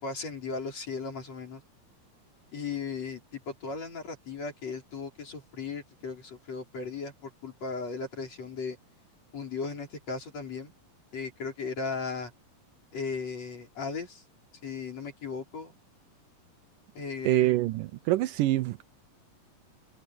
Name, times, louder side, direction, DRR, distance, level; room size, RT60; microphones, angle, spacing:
voice 1, 0.0-1.6 2.5-8.8 9.3-10.7 11.1-12.3 12.9-14.2 14.6-15.8 17.0-17.5, left 4 dB, 45° left, 6.2 m, -36 dB
voice 2, 17.2-18.8, right 16 dB, 80° right, 2.1 m, -25 dB
omnidirectional pair, 4.0 m